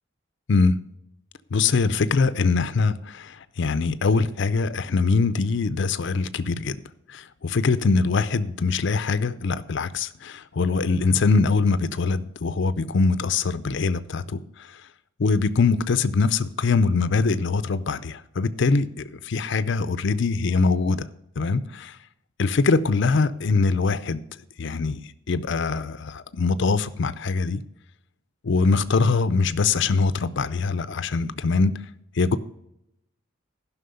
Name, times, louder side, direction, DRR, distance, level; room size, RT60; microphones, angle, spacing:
voice 1, 1.5-6.8 7.1-14.4 15.2-21.1 21.4-21.9 22.4-24.2 24.6-25.0 25.3-27.6 28.4-31.7 32.2-32.4, left 4 dB, 60° left, 0.5 m, -23 dB
11.5 x 5.9 x 6.8 m
head